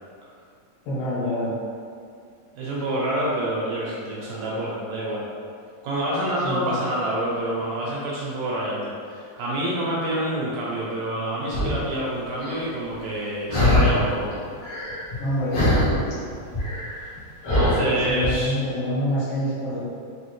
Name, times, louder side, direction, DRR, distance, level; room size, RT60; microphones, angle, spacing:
voice 1, 0.9-1.5 6.4-6.7 15.2-15.7 18.1-19.8, equal, 75° left, -10 dB, 3.1 m, -26 dB
voice 2, 2.5-5.3 5.8-14.3 17.0-17.1 17.5-18.5, right 1 dB, 80° right, -6 dB, 1.7 m, -27 dB
sound 1, 11.5-11.8 12.4-12.6 13.5-14.1 14.4-15.3 15.5-18.3, left 1 dB, 55° left, 1.6 m, -22 dB
5.8 x 2.8 x 3.1 m, 2.3 s
omnidirectional pair, 4.1 m